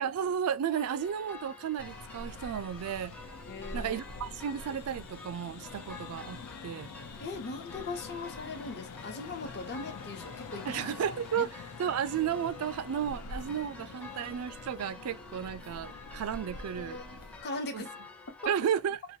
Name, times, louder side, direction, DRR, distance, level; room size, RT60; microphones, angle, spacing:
voice 1, 0.0-3.1 3.7-6.9 10.7-11.5 11.8-17.0 17.7-17.8 18.5-19.0, right 8 dB, 70° right, 0.3 m, -33 dB
sound 1, 0.7-18.5, left 2 dB, 5° left, 0.5 m, -49 dB
sound 2, 1.8-17.4, left 4 dB, 85° left, 0.4 m, -45 dB
voice 2, 3.5-4.3 7.2-10.9 11.4-11.5 16.5-17.9 18.4-18.5, left 3 dB, 50° left, 0.8 m, -40 dB
2.8 x 2.2 x 2.6 m
head